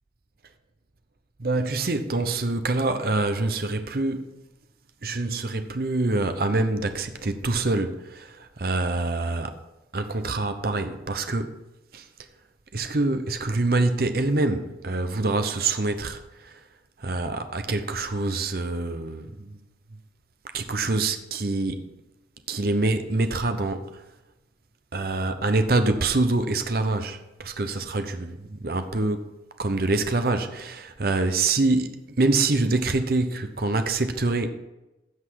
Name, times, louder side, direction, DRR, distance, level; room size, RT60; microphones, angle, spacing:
voice 1, 1.4-4.4 5.0-9.5 9.9-11.5 11.9-12.0 12.7-16.6 17.0-19.6 20.5-21.9 22.5-24.0 24.9-29.3 29.6-34.5, right 2 dB, 55° right, 0.8 m, -25 dB
16.0 x 6.0 x 4.7 m
head